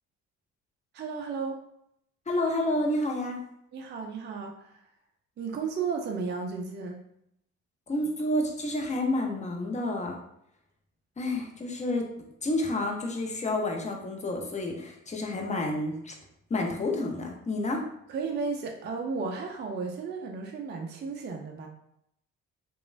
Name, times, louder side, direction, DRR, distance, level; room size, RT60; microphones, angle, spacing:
voice 1, 0.9-1.6 3.7-4.8 5.4-7.0 18.1-21.7, right 5 dB, 30° right, 2 dB, 0.4 m, -34 dB
voice 2, 2.3-3.4 7.9-10.2 11.2-12.1 12.4-16.1 16.5-17.8, left 1 dB, 20° left, 1 dB, 0.6 m, -29 dB
3.0 x 2.2 x 2.5 m, 0.77 s
hypercardioid pair, 50°, 38 cm